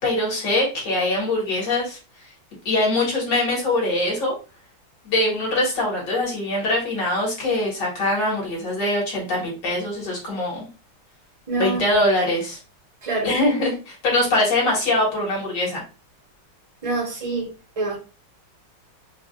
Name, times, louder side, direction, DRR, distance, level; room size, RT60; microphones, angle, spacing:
voice 1, 0.0-2.0 2.7-4.4 5.0-10.7 11.6-12.6 13.2-15.8, left 1 dB, 60° left, 2.2 m, -23 dB
voice 2, 11.5-11.9 13.0-13.3 16.8-18.0, right 3 dB, 20° right, 0.9 m, -26 dB
4.8 x 2.5 x 2.5 m
omnidirectional pair, 2.2 m